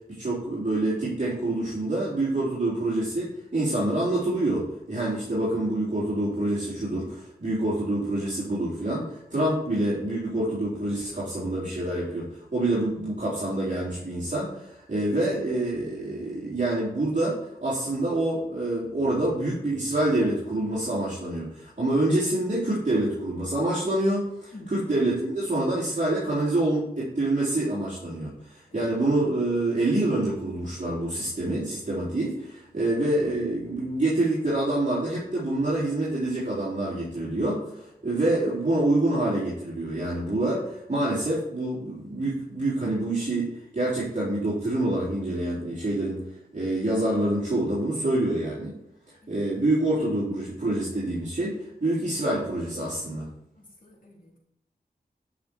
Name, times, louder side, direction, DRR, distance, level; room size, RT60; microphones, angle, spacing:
voice 1, 0.1-46.2 46.5-48.8 49.1-53.3, right 1 dB, 50° right, -8 dB, 3.9 m, -26 dB
voice 2, 53.6-54.4, left 1 dB, 55° left, -2 dB, 3.4 m, -47 dB
11.0 x 6.3 x 4.6 m, 0.83 s
wide cardioid pair, 60°, 16 cm